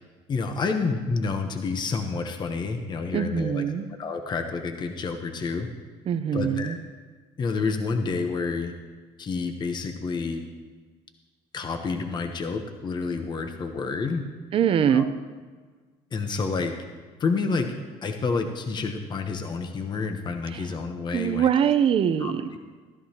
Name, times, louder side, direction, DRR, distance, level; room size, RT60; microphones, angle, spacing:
voice 1, 0.3-3.6 4.0-5.7 6.3-6.7 7.4-8.7 9.2-10.4 11.5-14.2 14.9-15.1 16.1-16.7 17.2-17.7 18.0-21.5 22.2-22.3, left 4 dB, 35° left, 6 dB, 1.0 m, -29 dB
voice 2, 3.1-3.9 6.1-6.8 14.5-15.1 20.5-20.6 21.1-22.4, right 8 dB, 45° right, 10 dB, 0.7 m, -23 dB
14.0 x 12.5 x 2.9 m, 1.4 s
cardioid pair, 100°, 13 cm